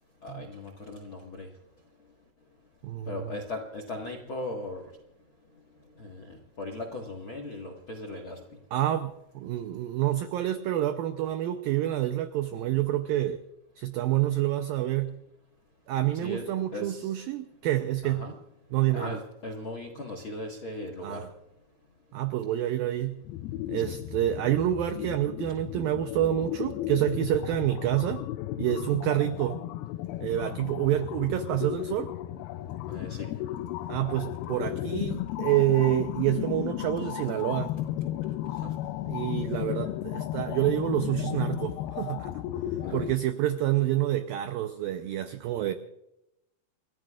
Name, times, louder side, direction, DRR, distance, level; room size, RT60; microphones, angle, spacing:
voice 1, 0.2-1.5 3.1-4.8 6.0-8.4 16.1-16.5 16.7-17.2 18.0-18.4 18.9-21.2 23.8-24.0 32.9-33.3 38.6-38.7 42.8-43.0, left 2 dB, 60° left, 1.3 m, -38 dB
voice 2, 2.8-3.3 8.7-13.4 13.8-15.2 15.9-18.3 18.7-19.2 21.0-21.3 22.1-23.2 23.7-28.2 28.6-29.6 30.2-32.1 33.9-37.7 39.1-42.3 42.9-45.7, right 13 dB, 90° right, 2.0 m, -28 dB
sound 1, 23.2-43.2, left 13 dB, 90° left, 2.1 m, -34 dB
29.5 x 14.5 x 2.4 m
omnidirectional pair, 5.1 m